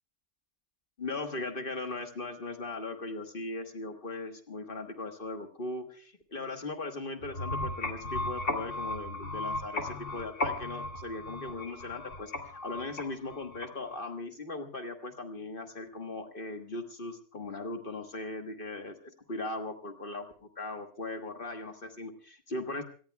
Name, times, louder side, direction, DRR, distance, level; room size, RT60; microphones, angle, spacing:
voice 1, 1.0-22.8, left 2 dB, 45° left, 5 dB, 1.5 m, -39 dB
sound 1, 7.2-14.0, left 2 dB, 70° left, 2.6 m, -36 dB
26.0 x 18.5 x 2.3 m, 0.42 s
omnidirectional pair, 1.3 m